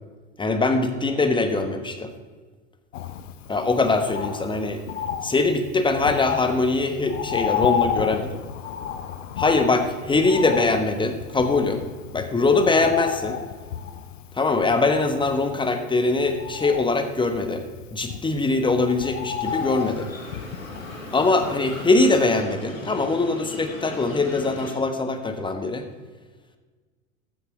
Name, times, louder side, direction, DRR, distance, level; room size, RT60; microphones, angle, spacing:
voice 1, 0.4-2.1 3.5-4.8 5.2-8.4 9.4-11.8 12.1-13.4 14.3-17.6 17.9-20.1 21.1-25.8, left 3 dB, 10° left, 7 dB, 1.2 m, -22 dB
Bird, 2.9-22.0 22.4-22.5, left 9 dB, 65° left, 0.9 m, -32 dB
sound 1, 19.4-24.7, left 1 dB, 90° left, 1.9 m, -38 dB
14.0 x 6.4 x 4.8 m, 1.4 s
figure-of-eight pair, 80°, 40 cm